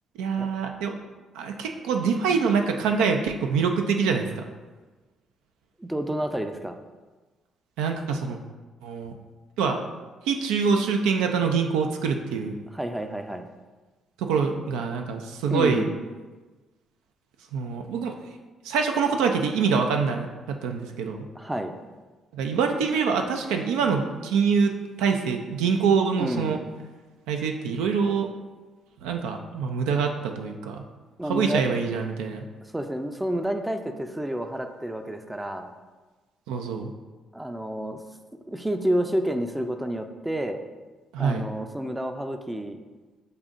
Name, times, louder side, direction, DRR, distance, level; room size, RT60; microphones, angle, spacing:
voice 1, 0.2-0.9 1.3-4.4 7.8-8.4 8.8-9.1 9.6-9.8 10.3-12.5 14.2-15.9 17.5-18.1 18.6-21.3 22.3-26.6 27.3-28.3 29.0-30.8 31.3-32.4 36.5-36.9 41.1-41.5, right 5 dB, 75° right, 4 dB, 0.3 m, -25 dB
voice 2, 5.8-6.8 12.7-13.5 15.5-15.9 21.4-21.7 26.2-26.7 31.2-31.6 32.7-35.7 37.3-38.0 38.5-40.6 41.2-42.8, right 1 dB, 10° right, 7 dB, 0.4 m, -29 dB
6.6 x 2.6 x 2.5 m, 1.3 s
hypercardioid pair, 45°, 0 cm